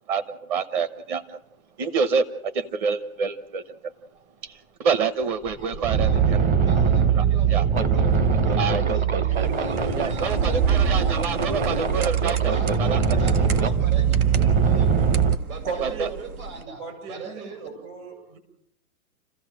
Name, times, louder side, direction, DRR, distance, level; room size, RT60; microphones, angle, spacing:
voice 1, 0.1-1.4 1.8-3.6 4.4-6.1 7.2-7.3 7.5-7.7 8.6-8.8 9.9-12.5 12.8-13.2 15.8-16.1, right 5 dB, 35° right, 11 dB, 1.1 m, -27 dB
sound 1, 4.9-5.0 5.5-15.3, right 6 dB, 20° right, 0.8 m, -21 dB
voice 2, 5.7-8.1 8.4-12.0 12.4-15.1 15.5-17.7, right 4 dB, 75° right, 5 dB, 7.8 m, -40 dB
sound 2, 9.3-16.6, right 5 dB, 90° right, 1.9 m, -34 dB
voice 3, 15.6-16.1 16.8-18.4, right 5 dB, 50° right, 7 dB, 7.9 m, -35 dB
29.0 x 15.5 x 7.7 m, 0.77 s
hypercardioid pair, 150°, 43 cm